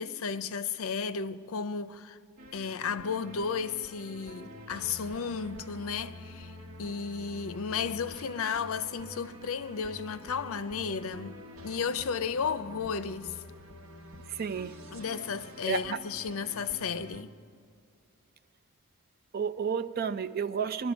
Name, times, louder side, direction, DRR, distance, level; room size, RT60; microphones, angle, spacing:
voice 1, 0.0-2.2 2.5-13.4 14.9-17.3, left 6 dB, 65° left, 0.5 m, -34 dB
sound 1, 2.4-17.2, left 1 dB, 65° right, 1.3 m, -48 dB
voice 2, 14.3-14.8 15.7-15.8 19.3-20.9, right 6 dB, 45° right, 0.4 m, -31 dB
22.0 x 12.0 x 5.2 m
head